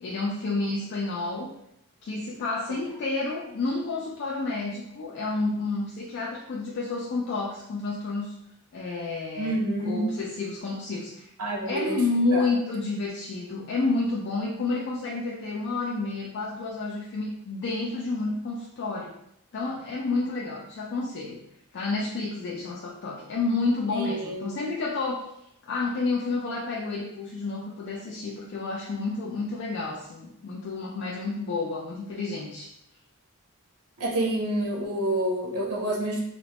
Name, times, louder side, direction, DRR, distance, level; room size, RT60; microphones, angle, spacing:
voice 1, 0.0-1.5 2.0-8.4 8.7-11.3 11.7-19.1 19.5-21.4 21.7-25.3 25.6-32.7, left 3 dB, 50° left, -3 dB, 0.3 m, -30 dB
voice 2, 9.4-10.1 11.4-12.0 12.3-12.4 23.9-24.5 34.0-36.2, right 1 dB, 75° right, -1 dB, 0.7 m, -28 dB
3.0 x 2.1 x 2.8 m, 0.77 s
head